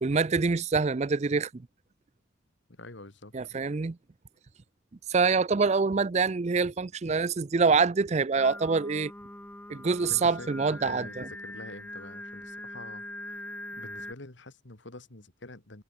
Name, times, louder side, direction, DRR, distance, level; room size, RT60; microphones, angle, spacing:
voice 1, 0.0-1.6 3.3-4.0 5.1-9.1 9.7-11.1, right 4 dB, 35° right, 0.4 m, -25 dB
voice 2, 2.7-3.5 7.1-7.2 10.0-13.0 13.8-15.8, left 2 dB, 60° left, 1.9 m, -46 dB
Singing, 8.4-14.1, left 1 dB, 10° left, 1.8 m, -42 dB
head